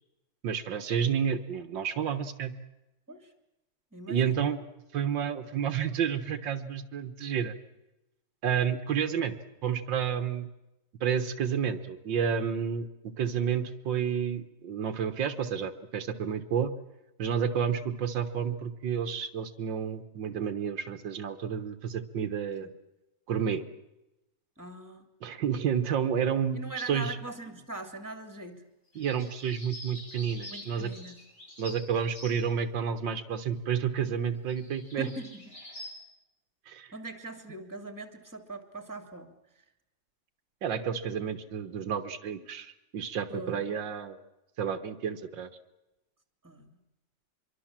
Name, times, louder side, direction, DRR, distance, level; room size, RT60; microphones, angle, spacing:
voice 1, 0.4-2.5 4.1-4.6 4.9-7.5 8.4-9.3 9.6-10.5 11.0-16.7 17.2-22.7 23.3-23.6 25.2-26.6 26.9-27.2 29.0-30.9 31.6-35.1 36.7-36.9 40.6-44.2 44.6-45.5, right 7 dB, 80° right, 9 dB, 2.0 m, -30 dB
voice 2, 3.9-4.4 22.6-22.7 24.6-25.1 26.5-28.6 30.5-31.2 35.0-35.6 36.9-39.6 43.3-43.7 46.4-46.8, right 2 dB, 10° right, 7 dB, 2.7 m, -42 dB
sound 1, 28.9-32.5 34.1-34.2 34.5-35.9, left 1 dB, 65° left, 8.4 m, -46 dB
25.5 x 23.5 x 7.5 m, 0.95 s
omnidirectional pair, 2.0 m